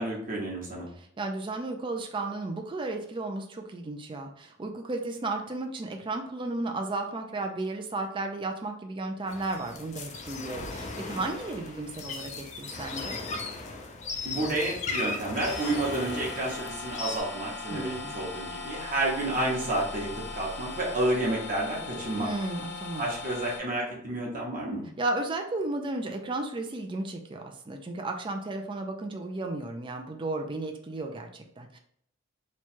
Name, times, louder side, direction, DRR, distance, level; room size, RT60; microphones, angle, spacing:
voice 1, 0.0-0.9 14.2-22.3 23.0-24.8, right 2 dB, 40° right, -4 dB, 0.9 m, -30 dB
voice 2, 1.0-13.2 17.7-18.2 22.1-23.0 25.0-31.8, right 2 dB, 25° right, 3 dB, 0.4 m, -34 dB
sound 1, 9.3-17.2, left 3 dB, 35° left, 0.5 m, -37 dB
sound 2, 15.4-23.6, left 3 dB, 60° left, 1.0 m, -39 dB
3.0 x 2.3 x 4.2 m, 0.66 s
head